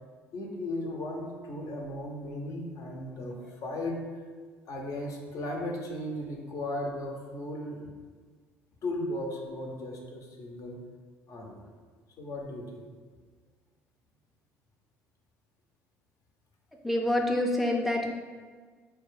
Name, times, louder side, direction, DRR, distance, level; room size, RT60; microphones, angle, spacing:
voice 1, 0.3-4.0 4.7-7.8 8.8-10.8 11.3-11.7 12.2-12.8, left 1 dB, 55° left, 0 dB, 0.7 m, -36 dB
voice 2, 16.8-18.1, left 1 dB, ahead, 0 dB, 0.4 m, -27 dB
4.2 x 2.3 x 3.2 m, 1.5 s
hypercardioid pair, 65°, 7 cm